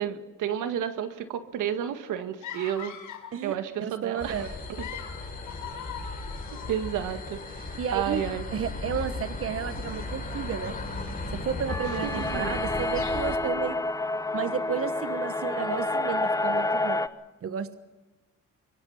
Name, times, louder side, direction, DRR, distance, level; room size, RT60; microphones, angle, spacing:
voice 1, 0.0-3.0 3.4-4.5 6.7-8.4 12.0-12.5, right 9 dB, 85° right, 9 dB, 1.8 m, -31 dB
sound 1, 2.4-3.4 4.6-7.0, left 8 dB, 80° left, 5.7 m, -41 dB
voice 2, 3.3-4.5 7.8-8.2 8.5-10.8 11.3-13.8 14.3-17.0 17.4-17.8, right 7 dB, 50° right, 11 dB, 1.2 m, -32 dB
sound 2, 4.2-13.4, left 3 dB, 30° left, 6.1 m, -36 dB
sound 3, 11.7-17.1, left 2 dB, 10° left, 1.0 m, -29 dB
25.0 x 23.0 x 5.7 m, 1.2 s
cardioid pair, 90°, 30 cm